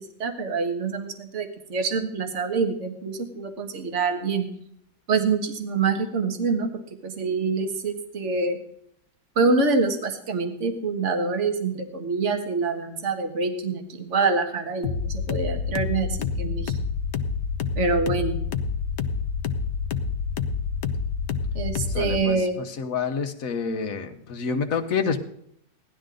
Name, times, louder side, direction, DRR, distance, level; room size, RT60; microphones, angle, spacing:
voice 1, 0.0-4.5 5.1-6.7 7.0-8.6 9.4-16.7 17.8-18.4 21.5-22.6, right 4 dB, 45° right, 5 dB, 1.7 m, -26 dB
sound 1, 14.8-22.2, left 5 dB, 70° left, 1.4 m, -28 dB
voice 2, 21.9-25.2, left 5 dB, 55° left, 6 dB, 1.5 m, -28 dB
17.5 x 11.5 x 3.8 m, 0.69 s
omnidirectional pair, 1.9 m